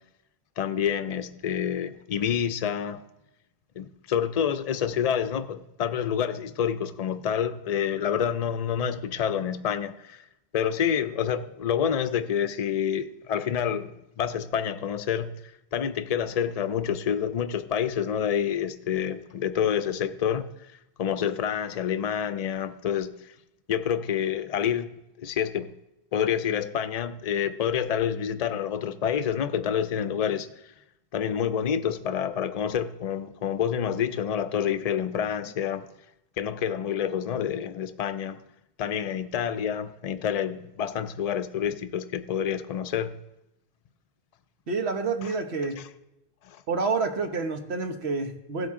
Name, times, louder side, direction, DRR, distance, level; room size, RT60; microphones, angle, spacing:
voice 1, 0.6-3.0 3.8-10.2 10.5-20.5 21.0-23.1 23.7-24.9 25.2-25.7 26.1-30.5 31.1-35.9 36.4-38.4 38.8-43.2 46.5-46.6, left 8 dB, 45° left, 0.6 m, -28 dB
voice 2, 44.7-45.8 46.7-48.7, right 4 dB, 80° right, 1.3 m, -28 dB
16.0 x 8.8 x 3.7 m
omnidirectional pair, 1.1 m